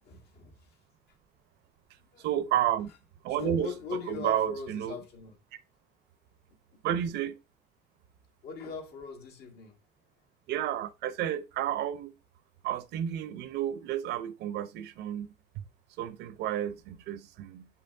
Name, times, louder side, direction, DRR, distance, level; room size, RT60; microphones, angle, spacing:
voice 1, 0.0-0.8 2.0-2.3 3.3-5.4 6.5-6.8 8.4-9.8, left 6 dB, 75° left, 2.2 m, -41 dB
voice 2, 2.2-2.9 3.2-3.7 4.1-5.0 6.8-7.3 10.5-12.1 12.6-15.3 16.0-17.7, right 10 dB, 80° right, 0.8 m, -31 dB
6.3 x 5.6 x 2.7 m
cardioid pair, 110°, 17 cm